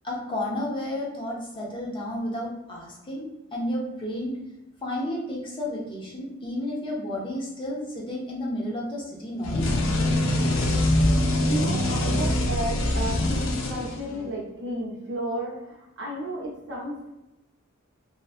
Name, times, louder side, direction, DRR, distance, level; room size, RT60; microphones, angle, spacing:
voice 1, 0.0-4.4 4.8-9.7, left 1 dB, 25° left, -3 dB, 0.5 m, -32 dB
sound 1, 9.4-14.3, left 1 dB, 75° left, 0.4 m, -24 dB
voice 2, 11.4-17.1, right 1 dB, 60° right, -3 dB, 0.8 m, -33 dB
2.4 x 2.2 x 2.4 m, 0.93 s
head